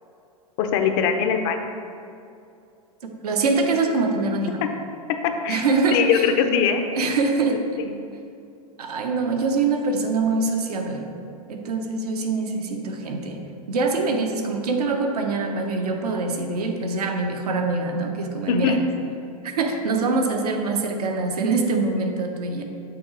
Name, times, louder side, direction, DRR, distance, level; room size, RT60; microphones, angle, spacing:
voice 1, 0.6-1.6 5.1-5.6 5.9-6.8 7.8-8.0 18.5-18.8, left 7 dB, 45° left, 6 dB, 0.6 m, -21 dB
voice 2, 3.2-4.6 5.5-6.3 6.9-7.6 8.8-11.1 11.5-13.4 13.7-18.8 19.6-22.6, right 3 dB, 80° right, 3 dB, 0.8 m, -24 dB
6.8 x 3.0 x 4.9 m, 2.5 s
hypercardioid pair, 115°, 20 cm